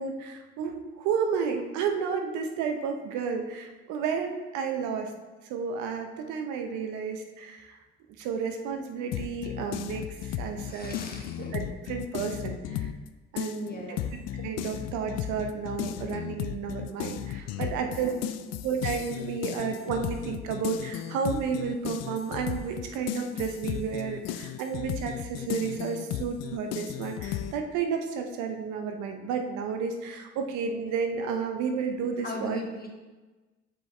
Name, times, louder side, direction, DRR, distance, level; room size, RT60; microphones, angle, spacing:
voice 1, 0.0-5.1 5.5-7.8 8.2-10.9 11.5-12.9 13.3-14.0 14.4-18.1 18.6-32.6, right 6 dB, 70° right, 5 dB, 0.8 m, -32 dB
sound 1, 9.1-13.1 13.4-27.5, left 11 dB, 55° left, 0.4 m, -35 dB
voice 2, 10.7-11.5 13.6-14.1 17.8-18.4 32.2-32.9, left 2 dB, 30° left, 1 dB, 1.4 m, -39 dB
6.0 x 5.1 x 3.3 m, 1.2 s
hypercardioid pair, 55°, 31 cm